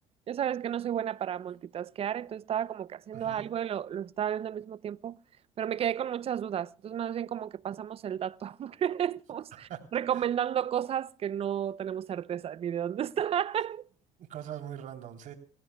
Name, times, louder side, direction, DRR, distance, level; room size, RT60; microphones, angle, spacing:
voice 1, 0.3-5.2 5.6-13.8, right 9 dB, 45° right, 0.6 m, -32 dB
voice 2, 3.1-3.4 9.5-9.8 10.1-10.3 14.2-15.3, right 10 dB, 65° right, 3.6 m, -42 dB
29.5 x 15.5 x 2.3 m
cardioid pair, 100°, 14 cm